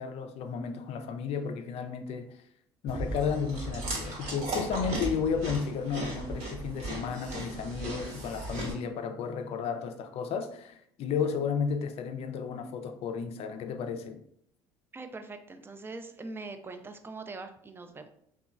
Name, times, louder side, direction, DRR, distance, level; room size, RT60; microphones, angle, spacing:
voice 1, 0.0-2.4 2.8-14.2, left 6 dB, 55° left, 0.4 m, -33 dB
Chewing mastication, 2.9-8.7, right 1 dB, 65° right, 1.2 m, -36 dB
voice 2, 14.9-18.1, right 3 dB, 20° right, 0.4 m, -42 dB
2.9 x 2.2 x 2.4 m
hypercardioid pair, 65°, 13 cm